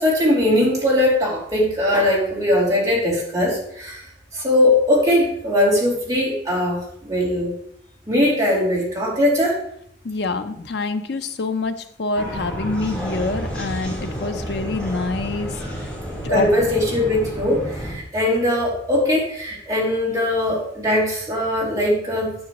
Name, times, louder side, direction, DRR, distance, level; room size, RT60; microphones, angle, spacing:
voice 1, 0.0-7.5 8.1-9.6 16.3-22.3, left 1 dB, 20° right, -5 dB, 2.7 m, -20 dB
voice 2, 10.0-15.5 16.2-16.5, left 3 dB, 70° left, 8 dB, 0.6 m, -26 dB
sound 1, 12.1-17.9, equal, 5° left, 2.1 m, -30 dB
9.7 x 6.0 x 3.0 m, 0.70 s
head